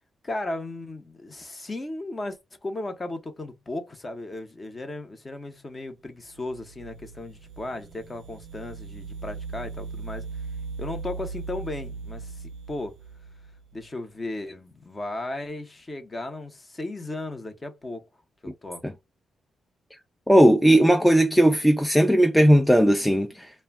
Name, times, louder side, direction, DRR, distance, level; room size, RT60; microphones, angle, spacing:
voice 1, 0.2-10.3 10.8-13.0 13.7-18.0 18.4-18.8, left 2 dB, 25° left, 0.7 m, -35 dB
sound 1, 6.3-13.8, right 4 dB, 80° right, 0.3 m, -39 dB
voice 2, 20.3-23.5, equal, 5° left, 0.3 m, -17 dB
2.2 x 2.1 x 3.3 m
cardioid pair, 90°, 0 cm